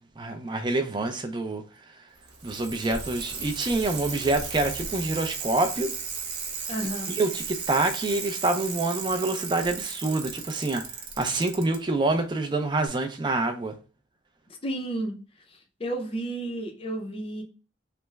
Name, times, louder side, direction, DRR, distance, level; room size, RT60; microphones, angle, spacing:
voice 1, 0.2-1.6 2.4-5.9 7.1-10.8 11.2-13.8, right 2 dB, 25° right, 0.4 m, -26 dB
Bicycle, 2.2-11.8 12.9-13.0, right 5 dB, 60° right, 0.7 m, -35 dB
voice 2, 6.7-7.2 14.6-15.2 15.5-17.4, right 1 dB, 30° left, 0.5 m, -32 dB
3.3 x 2.0 x 3.3 m
head